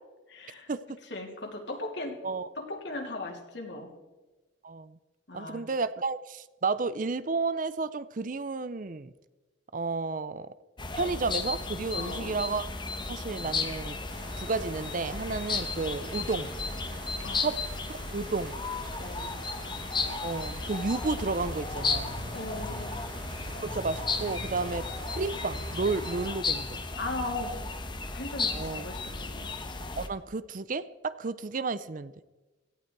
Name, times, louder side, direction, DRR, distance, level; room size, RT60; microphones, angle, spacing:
voice 1, 0.3-0.7 1.1-2.2 2.6-3.9 5.3-5.6 11.9-12.4 17.2-17.5 19.0-19.3 22.3-23.0 27.0-27.6 28.1-29.5, left 2 dB, 60° left, 2 dB, 3.0 m, -37 dB
voice 2, 4.6-5.0 5.3-9.1 9.7-10.5 11.0-12.6 13.1-14.0 14.4-16.5 17.4-17.6 17.9-18.6 20.2-22.3 23.6-24.9 25.1-26.8 28.5-28.9 30.0-32.1, right 3 dB, 45° right, 15 dB, 0.5 m, -32 dB
sound 1, 10.8-30.1, left 3 dB, 25° left, 1.0 m, -34 dB
sound 2, 14.1-26.3, right 1 dB, 85° right, 5.2 m, -44 dB
17.5 x 14.0 x 4.6 m, 1.1 s
head